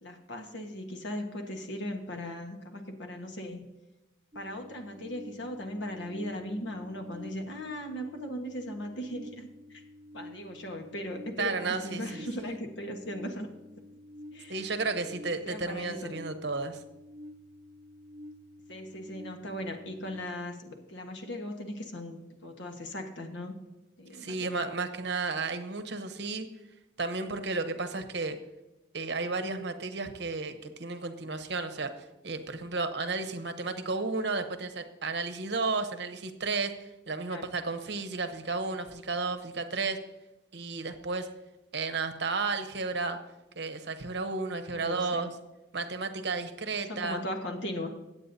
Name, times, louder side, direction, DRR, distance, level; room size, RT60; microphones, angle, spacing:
voice 1, 0.0-3.6 4.3-9.8 10.1-13.5 14.3-14.7 15.2-16.2 18.7-23.6 24.0-24.7 37.3-37.6 44.7-45.3 46.9-47.9, left 1 dB, 70° left, 4 dB, 1.4 m, -38 dB
sound 1, 4.3-20.2, left 1 dB, 15° right, 1.1 m, -50 dB
voice 2, 11.4-12.3 14.5-16.8 24.1-26.5 27.0-28.4 28.9-40.0 40.5-41.3 41.7-43.2 43.6-45.3 45.7-47.2, right 3 dB, 60° right, 8 dB, 0.9 m, -33 dB
22.0 x 8.6 x 2.7 m, 1.0 s
head